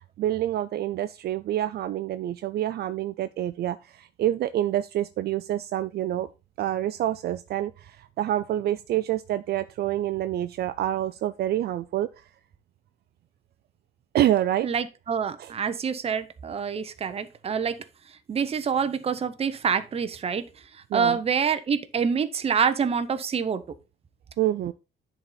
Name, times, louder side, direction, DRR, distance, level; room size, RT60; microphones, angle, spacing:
voice 1, 0.2-6.3 6.6-12.2 14.1-14.7 15.4-15.5 20.9-21.2 24.4-24.7, right 12 dB, 60° right, 0.4 m, -27 dB
voice 2, 14.6-17.8 18.3-20.4 20.9-23.6, right 6 dB, 35° right, 0.8 m, -26 dB
10.0 x 4.2 x 3.9 m
cardioid pair, 140°, 19 cm